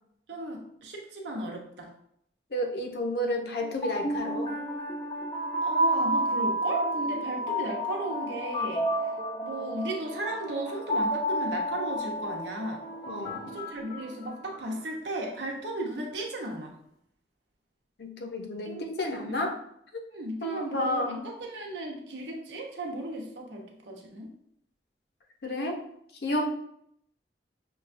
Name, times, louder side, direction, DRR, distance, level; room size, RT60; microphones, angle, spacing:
voice 1, 0.3-1.9 5.6-8.9 9.4-12.8 13.5-16.8 18.6-19.4 20.1-24.3 26.4-26.5, right 1 dB, 85° right, 0 dB, 0.8 m, -35 dB
voice 2, 2.5-4.5 13.0-13.6 18.0-19.5 20.4-21.2 25.4-25.8 26.2-26.5, left 1 dB, 70° left, 3 dB, 0.7 m, -31 dB
sound 1, 3.6-14.7, right 1 dB, 20° left, 0.5 m, -31 dB
6.1 x 2.3 x 2.5 m, 0.72 s
head